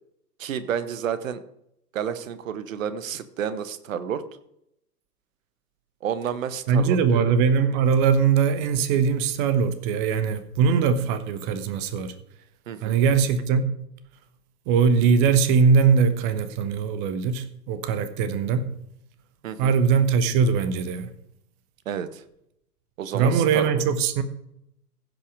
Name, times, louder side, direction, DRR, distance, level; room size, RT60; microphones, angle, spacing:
voice 1, 0.4-1.4 1.9-4.2 6.0-7.3 12.7-13.0 19.4-19.7 21.9-22.2 23.0-23.8, right 8 dB, 55° right, 1.1 m, -30 dB
voice 2, 6.7-12.1 12.8-13.7 14.7-18.7 19.6-21.1 23.1-24.2, right 6 dB, 30° right, 1.1 m, -21 dB
16.0 x 5.6 x 4.8 m
figure-of-eight pair, 105°, 49 cm